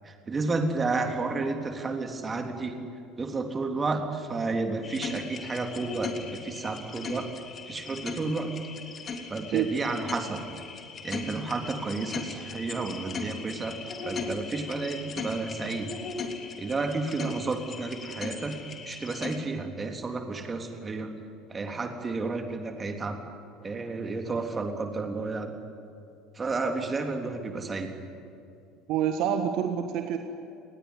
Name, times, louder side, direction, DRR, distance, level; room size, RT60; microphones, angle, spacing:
voice 1, 0.0-2.8 3.2-7.3 7.7-8.5 9.3-10.4 11.0-13.8 14.0-15.9 16.6-18.5 18.9-21.1 21.5-23.2 23.6-25.5 26.3-27.9, right 3 dB, 20° right, 4 dB, 3.5 m, -31 dB
sound 1, 4.8-19.4, left 4 dB, 30° left, 3.1 m, -38 dB
voice 2, 28.9-30.2, right 9 dB, 50° right, 6 dB, 1.5 m, -27 dB
29.5 x 19.5 x 9.5 m, 2.7 s
figure-of-eight pair, 65°, 0 cm